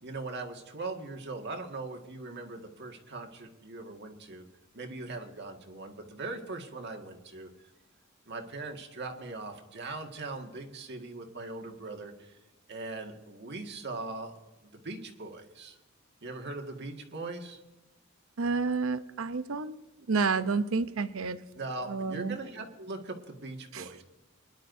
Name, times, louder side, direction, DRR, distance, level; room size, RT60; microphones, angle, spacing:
voice 1, 0.0-4.5 4.7-7.5 8.3-12.4 12.7-15.8 16.2-17.6 21.5-24.0, right 3 dB, 55° right, 2 dB, 1.9 m, -40 dB
voice 2, 18.4-19.8 20.1-21.4 21.9-22.4 23.7-24.0, right 4 dB, 75° right, 12 dB, 0.7 m, -30 dB
24.5 x 11.5 x 2.7 m, 1.1 s
head